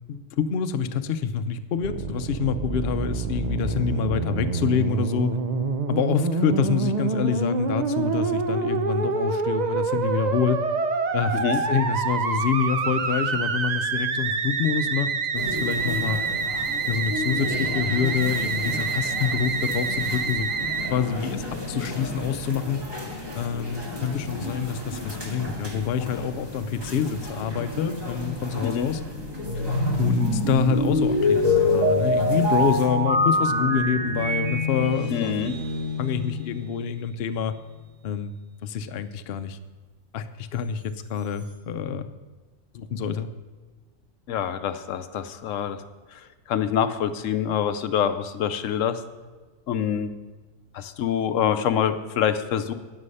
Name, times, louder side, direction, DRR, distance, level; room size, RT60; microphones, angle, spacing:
voice 1, 0.1-5.3 5.9-10.6 11.1-16.2 16.9-22.8 23.3-29.0 30.0-35.3 36.0-37.5 38.0-38.3 38.6-39.6 40.1-42.1 42.7-43.3, left 7 dB, 60° left, 10 dB, 0.8 m, -26 dB
Musical instrument, 1.8-20.9, right 4 dB, 45° right, 0.6 m, -27 dB
sound 1, 15.3-32.9, left 2 dB, 20° right, 2.1 m, -35 dB
sound 2, 29.4-36.7, left 1 dB, 75° right, 2.4 m, -24 dB
voice 2, 35.1-35.5 44.3-45.8 46.5-49.0 49.7-50.1 50.7-52.7, left 9 dB, 85° left, 10 dB, 1.0 m, -25 dB
9.8 x 9.8 x 5.5 m, 1.3 s
omnidirectional pair, 1.3 m